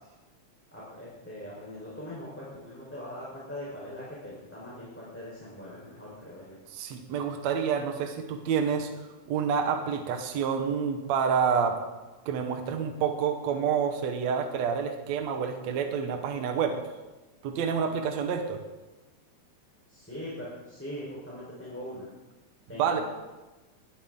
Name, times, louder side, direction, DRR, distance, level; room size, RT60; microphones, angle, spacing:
voice 1, 0.7-6.6 19.9-22.1 22.7-23.0, left 1 dB, 5° left, -8 dB, 3.8 m, -41 dB
voice 2, 6.7-8.9 9.3-11.8 12.3-16.8 17.4-18.6 22.8-23.0, right 7 dB, 70° right, 5 dB, 2.3 m, -28 dB
20.0 x 12.0 x 3.7 m, 1.1 s
omnidirectional pair, 3.4 m